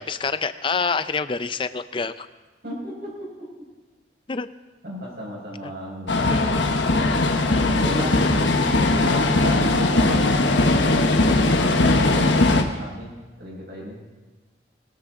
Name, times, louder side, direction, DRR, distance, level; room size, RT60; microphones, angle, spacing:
voice 1, 0.0-2.3 4.3-4.5 5.6-5.7 6.3-6.6 7.5-7.7, left 4 dB, 30° left, 13 dB, 0.5 m, -27 dB
voice 2, 2.6-3.5 4.8-6.7 7.6-8.3 9.0-14.0, equal, 65° right, -6 dB, 6.2 m, -35 dB
sound 1, 6.1-12.6, left 2 dB, 85° left, 1.2 m, -19 dB
21.5 x 13.0 x 3.9 m, 1.2 s
head